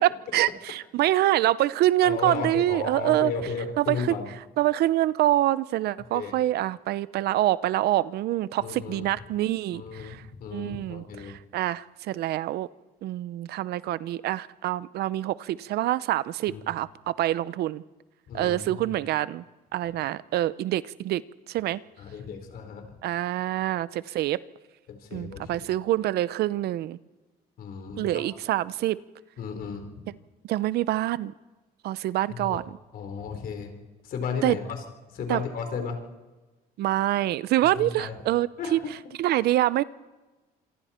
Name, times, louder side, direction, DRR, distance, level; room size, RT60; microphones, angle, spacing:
voice 1, 0.0-3.3 3.8-4.2 4.6-10.2 10.5-12.7 13.0-17.8 18.3-19.4 19.7-21.2 21.5-21.8 23.0-24.4 25.1-27.0 28.0-29.0 30.5-31.3 31.8-32.8 34.4-34.6 35.3-35.4 36.8-38.8 39.2-39.8, right 14 dB, 70° right, 18 dB, 0.7 m, -26 dB
voice 2, 2.0-4.2 6.1-6.3 8.6-9.1 9.7-11.3 16.5-16.6 18.3-18.9 22.0-22.9 24.9-25.5 27.6-28.3 29.4-29.9 32.3-32.6 32.9-33.7 34.0-34.8 35.1-36.0 37.8-38.2 38.6-38.9, left 5 dB, 60° left, 5 dB, 4.3 m, -34 dB
26.5 x 23.0 x 4.4 m, 1.2 s
cardioid pair, 110°, 17 cm